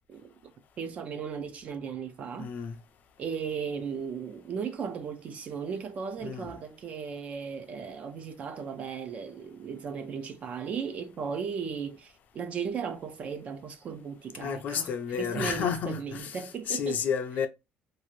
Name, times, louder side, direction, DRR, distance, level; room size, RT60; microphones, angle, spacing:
voice 1, 0.8-2.5 3.2-17.0, right 6 dB, 35° right, 0.4 m, -36 dB
voice 2, 2.4-2.7 6.2-6.5 14.4-17.5, left 7 dB, 45° left, 0.4 m, -31 dB
2.6 x 2.4 x 3.0 m
cardioid pair, 170°, 4 cm